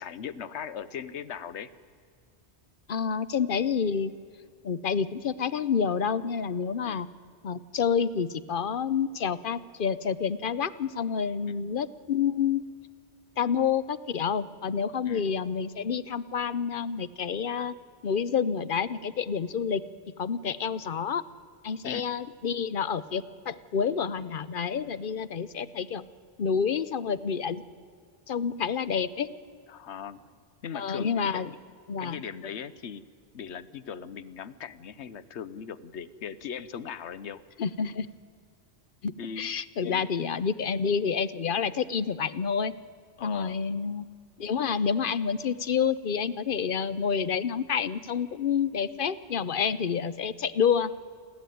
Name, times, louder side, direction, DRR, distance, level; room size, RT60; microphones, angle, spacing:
voice 1, 0.0-1.7 6.8-7.0 11.6-11.7 15.1-15.3 21.8-22.1 29.7-30.2 30.6-31.6 32.0-33.1 33.3-37.4 39.2-39.5 39.8-40.1 43.2-43.6, left 7 dB, 90° left, 15 dB, 1.1 m, -39 dB
voice 2, 2.9-4.1 4.6-7.1 7.4-12.6 13.4-17.7 18.0-19.8 20.2-21.2 21.6-26.1 26.4-27.6 28.3-29.3 30.7-31.5 31.9-32.2 37.6-38.1 39.0-42.7 43.2-44.1 44.4-50.9, left 6 dB, 55° left, 15 dB, 0.8 m, -28 dB
29.0 x 11.5 x 9.2 m, 2.1 s
omnidirectional pair, 1.1 m